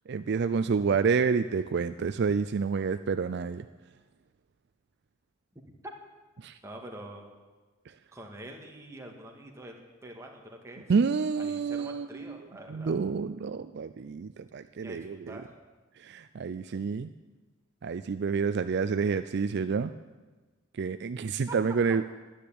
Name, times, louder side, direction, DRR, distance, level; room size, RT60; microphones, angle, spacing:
voice 1, 0.1-3.7 6.4-6.6 10.9-12.4 12.7-15.4 16.0-17.1 17.8-19.9 20.8-22.2, right 5 dB, 55° right, 11 dB, 0.4 m, -29 dB
voice 2, 6.6-7.3 8.1-10.9 11.4-12.9 14.8-15.5 21.5-21.6, right 1 dB, 15° right, 1 dB, 1.8 m, -45 dB
12.0 x 10.0 x 8.6 m, 1.3 s
head